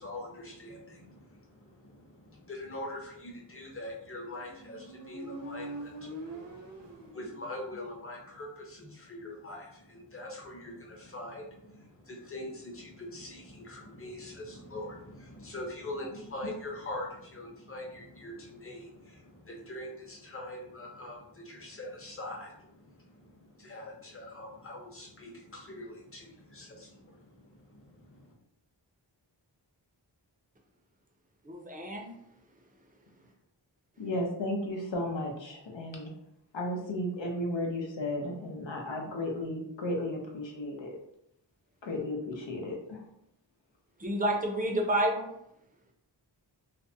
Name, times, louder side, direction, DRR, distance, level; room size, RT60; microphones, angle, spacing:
voice 1, 0.0-28.3, left 1 dB, 30° left, 0 dB, 0.7 m, -43 dB
Motorcycle, 4.1-7.8, right 1 dB, 80° right, 0.8 m, -44 dB
voice 2, 31.4-32.1 44.0-45.3, right 1 dB, 20° right, 1 dB, 0.5 m, -29 dB
voice 3, 34.0-36.1 36.5-41.0 41.8-43.0, left 1 dB, 90° left, 1 dB, 0.6 m, -34 dB
2.5 x 2.1 x 2.6 m, 0.76 s
wide cardioid pair, 50°, 44 cm